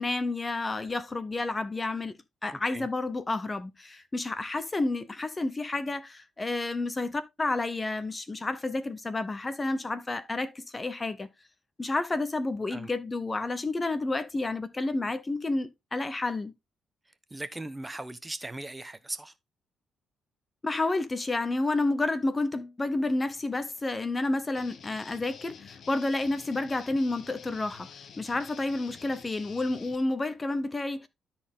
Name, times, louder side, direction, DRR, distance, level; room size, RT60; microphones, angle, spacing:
voice 1, 0.0-11.3 11.8-16.5 20.6-27.9 28.2-31.1, left 2 dB, 25° left, 0.9 m, -30 dB
voice 2, 2.5-2.9 12.7-12.9 17.1-19.3, right 2 dB, 15° right, 1.0 m, -39 dB
Guitar, 24.5-30.0, left 7 dB, 60° left, 1.2 m, -49 dB
12.5 x 4.4 x 3.7 m
cardioid pair, 90°, 0 cm